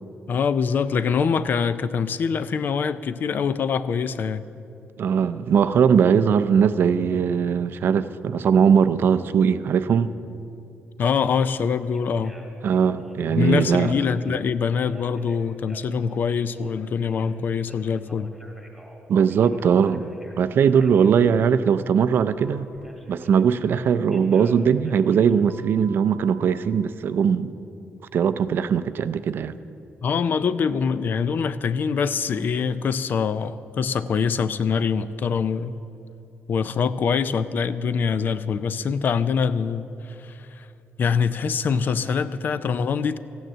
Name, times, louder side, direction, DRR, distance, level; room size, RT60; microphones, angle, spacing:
voice 1, 0.3-4.4 11.0-12.3 13.3-18.3 30.0-35.8 36.5-39.9 40.2-40.7 41.0-43.2, left 6 dB, 45° left, 14 dB, 0.4 m, -24 dB
voice 2, 5.0-10.1 12.6-13.9 19.1-20.1 20.4-22.7 23.1-27.5 28.1-29.6, right 7 dB, 55° right, 13 dB, 0.5 m, -20 dB
Telephone, 11.4-11.5 11.9-12.6 12.9-14.3 14.9-17.4 17.7-20.4 20.7-21.1 22.4-23.8 24.1-26.4, right 1 dB, ahead, 1.7 m, -47 dB
14.5 x 9.3 x 7.4 m, 2.7 s
cardioid pair, 160°, 4 cm